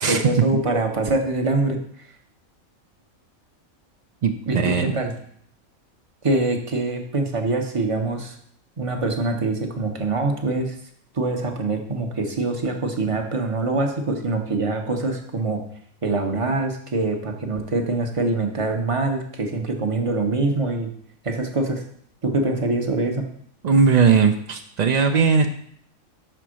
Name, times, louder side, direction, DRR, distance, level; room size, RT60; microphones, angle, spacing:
voice 1, 0.1-1.8 4.5-5.1 6.2-8.4 8.8-10.8 11.1-15.6 16.0-20.9 21.2-21.8 22.2-23.2, right 2 dB, 30° right, 4 dB, 0.7 m, -24 dB
voice 2, 4.2-4.9 23.6-25.5, right 5 dB, 85° right, 5 dB, 0.3 m, -18 dB
5.7 x 4.4 x 6.2 m, 0.64 s
omnidirectional pair, 1.4 m